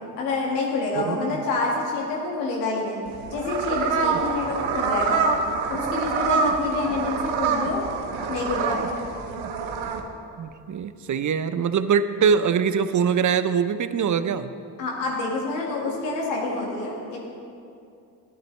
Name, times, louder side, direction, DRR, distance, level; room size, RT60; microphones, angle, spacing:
voice 1, 0.2-3.0 3.3-5.2 5.7-7.8 8.3-9.0 14.8-17.2, left 3 dB, 85° left, -2 dB, 2.0 m, -27 dB
voice 2, 1.0-1.4 10.4-14.5, right 6 dB, 35° right, 12 dB, 0.7 m, -23 dB
sound 1, 3.1-10.0, right 5 dB, 65° right, 1.1 m, -26 dB
13.0 x 11.5 x 3.3 m, 2.5 s
hypercardioid pair, 45°, 50 cm